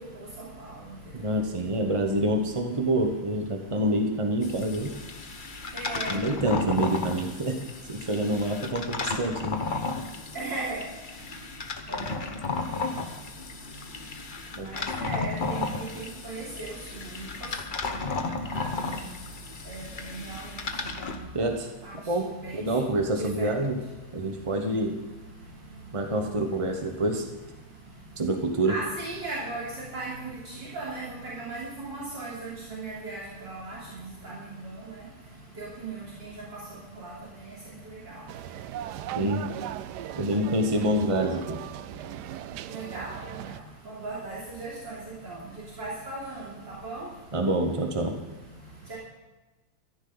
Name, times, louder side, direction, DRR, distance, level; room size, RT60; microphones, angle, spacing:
voice 1, 0.0-1.9 2.8-2.9 3.5-3.8 4.5-6.3 7.0-21.4 21.8-22.8 23.1-24.8 25.2-27.0 27.6-28.3 28.7-40.3 41.7-47.5 48.1-49.0, right 2 dB, 55° right, -8 dB, 3.9 m, -40 dB
voice 2, 1.1-4.9 6.1-7.6 7.9-9.6 14.6-14.7 21.3-21.7 22.1-22.3 22.5-23.8 24.1-25.0 25.9-27.3 28.2-28.7 39.1-39.4 40.1-41.6 47.3-48.2, right 1 dB, 30° right, 4 dB, 0.6 m, -27 dB
sound 1, 4.4-21.2, left 3 dB, 40° left, 0.7 m, -34 dB
sound 2, 38.3-43.6, right 12 dB, 85° right, 0.9 m, -38 dB
16.0 x 14.0 x 4.0 m, 1.2 s
omnidirectional pair, 2.4 m